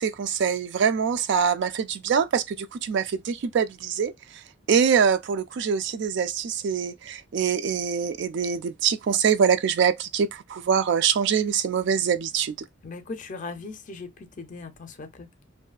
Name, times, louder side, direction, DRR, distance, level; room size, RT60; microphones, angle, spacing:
voice 1, 0.0-4.1 4.7-12.5, right 7 dB, 60° right, 0.3 m, -24 dB
voice 2, 12.8-15.3, left 3 dB, 40° left, 0.5 m, -38 dB
2.6 x 2.3 x 2.3 m
head